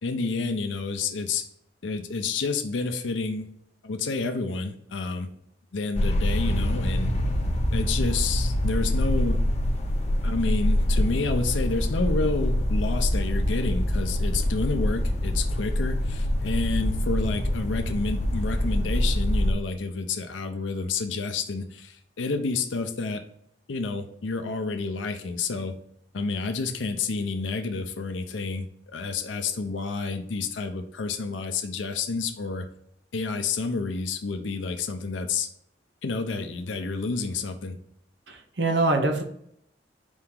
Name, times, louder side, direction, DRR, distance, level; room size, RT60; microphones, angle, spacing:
voice 1, 0.0-1.4 1.8-3.5 3.8-5.3 5.7-7.1 7.7-9.4 10.2-23.2 23.7-25.8 26.1-28.7 28.9-32.7 33.1-35.5 36.0-37.8, left 4 dB, 90° left, 7 dB, 0.6 m, -29 dB
sound 1, 5.9-19.5, left 1 dB, 35° left, 0.6 m, -25 dB
voice 2, 38.3-39.2, right 2 dB, 65° right, 5 dB, 0.8 m, -24 dB
4.4 x 2.9 x 3.6 m, 0.71 s
head